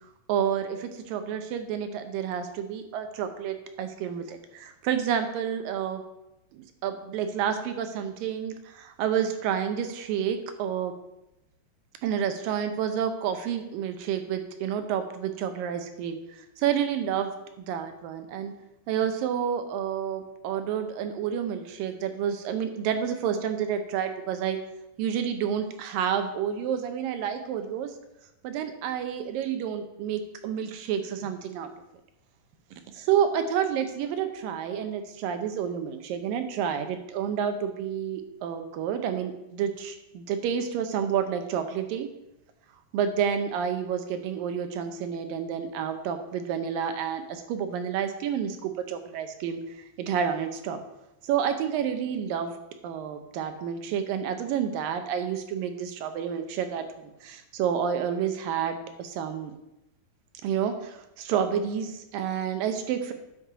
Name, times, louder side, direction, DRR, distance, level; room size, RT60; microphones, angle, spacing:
voice 1, 0.3-6.0 6.5-10.9 12.0-17.3 17.6-18.5 18.9-24.6 25.0-27.9 28.4-31.7 32.9-42.1 42.9-50.8 51.2-52.5 52.8-59.5 60.4-63.1, right 8 dB, 75° right, 7 dB, 2.2 m, -29 dB
10.0 x 7.2 x 5.0 m, 0.89 s
omnidirectional pair, 4.5 m